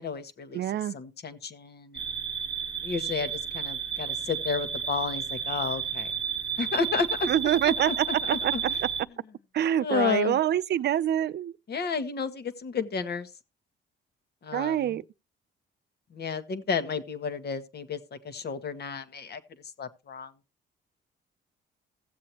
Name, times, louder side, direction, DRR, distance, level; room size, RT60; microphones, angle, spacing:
voice 1, 0.0-0.6 0.9-2.0 2.8-6.1 6.6-7.3 7.7-7.9 8.3-8.6 9.8-10.4 11.7-13.3 14.4-15.0 16.1-19.4 19.8-20.3, left 5 dB, 55° left, 1.4 m, -32 dB
voice 2, 0.5-1.0 7.3-8.5 8.8-8.9 9.5-11.5 14.5-15.0, right 11 dB, 60° right, 0.5 m, -26 dB
sound 1, 1.9-9.0, right 7 dB, 25° right, 0.9 m, -32 dB
16.0 x 7.6 x 2.9 m
cardioid pair, 90°, 20 cm